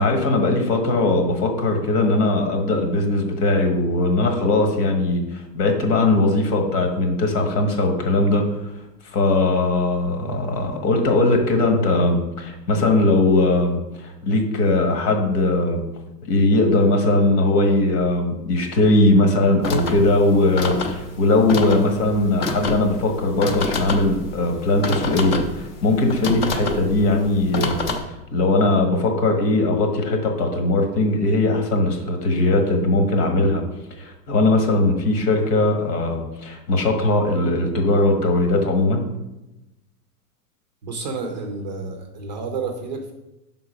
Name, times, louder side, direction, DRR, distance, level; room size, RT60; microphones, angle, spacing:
voice 1, 0.0-8.4 9.1-15.8 16.2-27.8 28.3-33.6 34.0-39.0, left 2 dB, 85° left, 4 dB, 1.6 m, -19 dB
sound 1, 19.6-28.0, left 3 dB, 30° left, 0.5 m, -28 dB
voice 2, 40.8-43.1, right 4 dB, 30° right, 4 dB, 0.4 m, -30 dB
5.8 x 3.9 x 4.9 m, 0.93 s
supercardioid pair, 165°, 47 cm